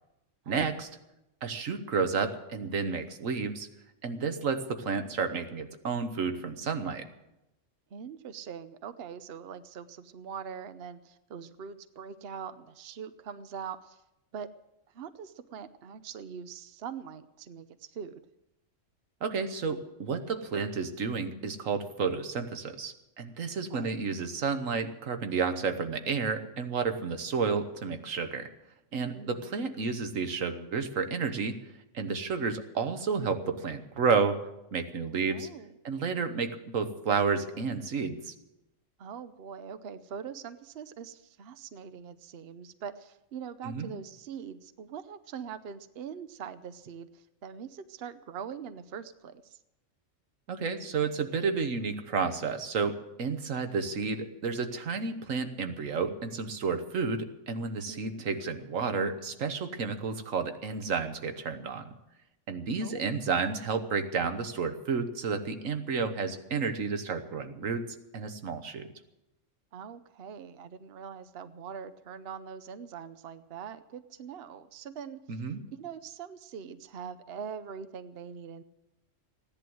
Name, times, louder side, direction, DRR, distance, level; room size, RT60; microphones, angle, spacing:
voice 1, 0.5-0.9 1.4-3.7 4.0-7.1 19.2-28.5 28.9-31.6 31.9-34.4 34.7-35.5 35.8-38.3 43.6-43.9 50.5-62.0 62.5-67.8 68.1-68.9 75.3-75.6, right 5 dB, 90° right, 8 dB, 1.5 m, -31 dB
voice 2, 7.9-14.0 14.3-14.5 14.9-18.2 23.7-23.9 29.1-29.5 35.3-35.7 39.0-49.6 57.9-58.2 62.8-63.1 69.7-75.4 75.7-78.6, right 7 dB, 55° right, 12 dB, 0.9 m, -43 dB
15.5 x 11.0 x 7.8 m, 0.91 s
omnidirectional pair, 1.3 m